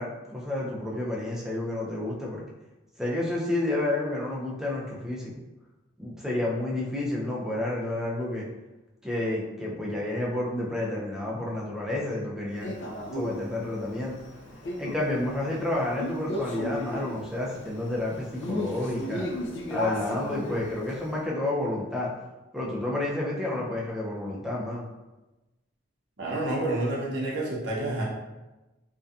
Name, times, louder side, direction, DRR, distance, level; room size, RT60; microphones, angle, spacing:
voice 1, 0.0-2.4 3.0-5.3 6.0-8.5 9.0-12.7 13.1-14.1 14.8-19.3 19.7-22.1 22.5-24.9, left 1 dB, 5° right, -5 dB, 0.4 m, -30 dB
Male speech man speaking, 12.6-21.1, left 1 dB, 65° left, 0.4 m, -35 dB
voice 2, 26.2-28.0, right 2 dB, 65° right, -3 dB, 0.6 m, -29 dB
2.6 x 2.2 x 2.3 m, 1.1 s
head